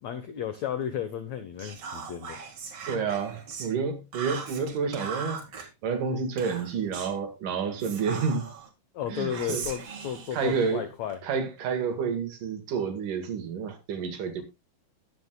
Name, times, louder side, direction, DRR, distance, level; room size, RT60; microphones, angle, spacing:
voice 1, 0.0-2.4 8.9-11.2, left 9 dB, 75° left, 1.6 m, -33 dB
Whispering, 1.6-3.7 4.1-5.7 6.4-7.2 7.8-8.7 9.3-11.2, right 5 dB, 45° right, 2.2 m, -39 dB
voice 2, 2.9-8.5 9.1-9.6 10.3-10.8 11.2-14.4, right 5 dB, 60° right, 2.9 m, -29 dB
20.0 x 7.4 x 2.3 m
omnidirectional pair, 4.5 m